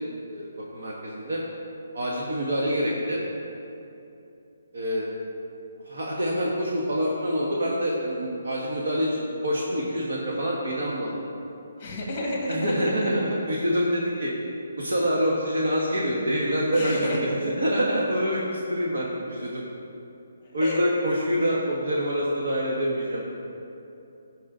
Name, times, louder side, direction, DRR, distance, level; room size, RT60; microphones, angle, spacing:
voice 1, 0.2-1.4 1.9-3.2 4.7-5.0 5.9-11.2 12.5-14.5 14.8-19.6 20.5-23.2, equal, 65° right, -4 dB, 1.5 m, -26 dB
voice 2, 11.8-13.1 16.7-17.2 20.6-20.8, left 1 dB, 15° left, -2 dB, 1.8 m, -30 dB
15.5 x 5.3 x 3.9 m, 2.8 s
hypercardioid pair, 180°, 0 cm